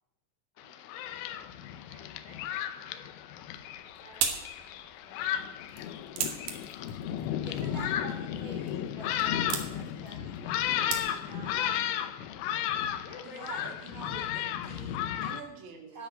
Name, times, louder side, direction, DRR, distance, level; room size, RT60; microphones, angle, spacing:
voice 1, 0.5-4.4 5.0-6.2 6.9-7.7 8.0-9.1 13.0-13.9, left 4 dB, 50° left, -2 dB, 4.4 m, -54 dB
Thunderstorm, 0.6-15.4, left 10 dB, 80° left, 3.2 m, -34 dB
sound 1, 3.5-11.5, right 7 dB, 65° right, 2.3 m, -39 dB
voice 2, 7.4-11.8 15.9-16.1, right 3 dB, 20° right, -2 dB, 3.3 m, -47 dB
voice 3, 13.3-16.0, right 5 dB, 85° right, 2 dB, 4.6 m, -46 dB
10.5 x 8.0 x 9.1 m, 0.98 s
omnidirectional pair, 5.7 m